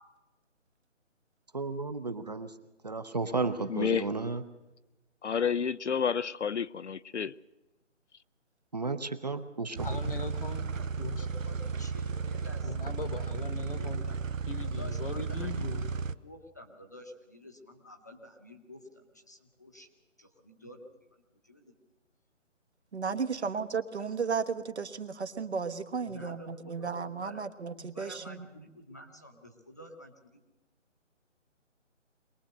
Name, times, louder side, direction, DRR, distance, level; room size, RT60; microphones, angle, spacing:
voice 1, 1.5-2.5 2.8-4.4 8.7-10.0, right 3 dB, 35° right, 0.8 m, -33 dB
voice 2, 3.7-4.1 5.2-7.3, left 7 dB, 65° left, 0.6 m, -30 dB
voice 3, 9.8-11.2 12.6-14.1 14.4-15.9, left 3 dB, 45° left, 1.2 m, -39 dB
sound 1, 9.8-16.1, right 5 dB, 85° right, 0.9 m, -34 dB
voice 4, 11.2-13.3 13.8-14.2 14.6-21.7 23.3-23.5 26.0-30.5, left 1 dB, 15° left, 0.9 m, -50 dB
voice 5, 22.9-28.5, right 5 dB, 60° right, 1.4 m, -34 dB
22.5 x 19.5 x 6.6 m
hypercardioid pair, 170°, 38 cm